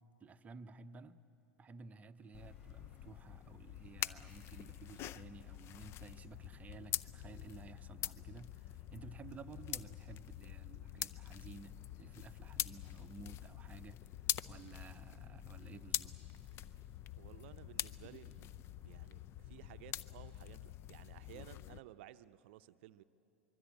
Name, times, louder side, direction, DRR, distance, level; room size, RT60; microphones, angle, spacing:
voice 1, 0.2-1.2 1.6-14.1 14.5-16.2 16.7-16.8, right 4 dB, 20° right, 10 dB, 0.8 m, -54 dB
sound 1, 2.2-6.8, left 1 dB, 10° left, 6.5 m, -73 dB
sound 2, 2.3-21.8, left 12 dB, 35° left, 0.5 m, -45 dB
sound 3, 5.7-21.6, left 4 dB, 70° left, 3.9 m, -71 dB
voice 2, 17.2-23.0, right 13 dB, 55° right, 12 dB, 0.6 m, -56 dB
24.0 x 23.5 x 8.6 m, 3.0 s
figure-of-eight pair, 95°, 7 cm